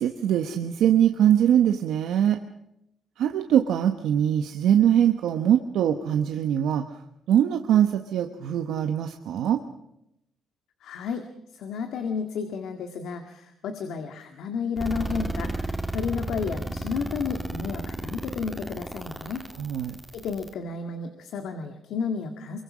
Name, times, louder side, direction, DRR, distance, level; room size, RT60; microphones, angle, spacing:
voice 1, 0.0-2.4 3.2-6.9 7.3-9.6 19.6-20.0, right 10 dB, 80° right, 6 dB, 1.2 m, -22 dB
voice 2, 10.8-11.2 11.5-19.4 20.1-22.6, left 5 dB, 80° left, 6 dB, 1.9 m, -32 dB
sound 1, 14.8-20.5, right 1 dB, ahead, 2.6 m, -32 dB
24.0 x 23.5 x 6.3 m, 0.83 s
cardioid pair, 90°, 0 cm